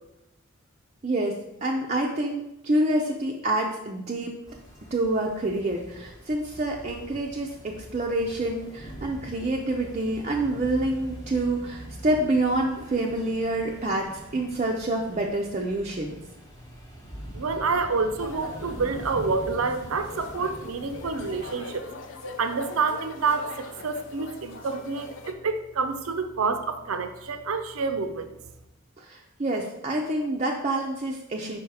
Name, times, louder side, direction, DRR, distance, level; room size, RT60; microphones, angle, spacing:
voice 1, 1.0-4.4 4.9-16.2 29.0-31.6, right 1 dB, 35° right, -1 dB, 0.5 m, -27 dB
sound 1, 4.5-21.5, equal, 15° left, 0.9 m, -43 dB
voice 2, 17.3-21.9 22.4-28.3, right 4 dB, 90° right, 9 dB, 0.6 m, -28 dB
sound 2, 18.2-25.3, left 4 dB, 60° left, 0.5 m, -42 dB
4.8 x 4.6 x 4.8 m, 0.90 s
head